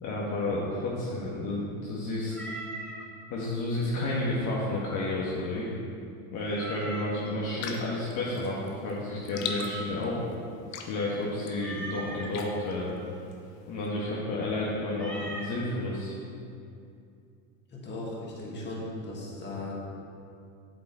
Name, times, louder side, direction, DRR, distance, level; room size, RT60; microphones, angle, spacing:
voice 1, 0.0-2.3 3.3-5.7 6.3-10.2 10.8-13.0 13.7-16.1, left 2 dB, 50° left, -5 dB, 1.7 m, -31 dB
Meow, 2.3-3.0 6.5-7.3 9.3-10.1 11.6-12.3 14.9-15.6, right 2 dB, 5° left, 1.2 m, -40 dB
sound 1, 7.6-13.9, left 6 dB, 85° left, 1.0 m, -43 dB
voice 2, 17.7-19.7, left 2 dB, 25° left, -4 dB, 2.2 m, -37 dB
8.3 x 7.6 x 4.4 m, 2.5 s
supercardioid pair, 125°, 39 cm